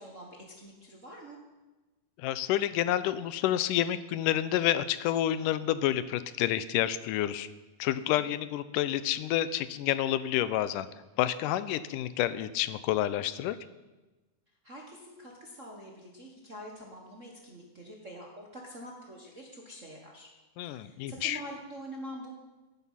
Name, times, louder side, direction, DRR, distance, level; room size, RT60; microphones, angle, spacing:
voice 1, 0.0-1.4 8.2-8.3 14.6-20.3 20.6-22.3, equal, 40° right, -1 dB, 1.1 m, -45 dB
voice 2, 2.2-7.5 7.8-10.9 11.2-13.6 20.6-21.4, left 12 dB, 90° left, 14 dB, 2.2 m, -29 dB
17.5 x 9.8 x 5.7 m, 1.2 s
omnidirectional pair, 3.7 m